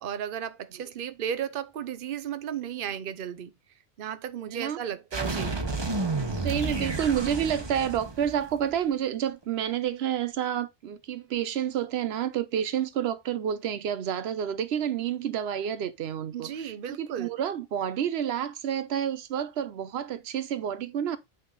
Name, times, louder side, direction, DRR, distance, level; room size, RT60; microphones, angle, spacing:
voice 1, 0.0-3.5 4.0-5.6 16.3-17.3, right 9 dB, 60° right, 0.8 m, -34 dB
sound 1, 5.1-8.8, right 3 dB, 25° right, 1.1 m, -31 dB
voice 2, 6.4-21.2, right 9 dB, 90° right, 0.9 m, -29 dB
8.6 x 3.7 x 3.9 m
omnidirectional pair, 1.0 m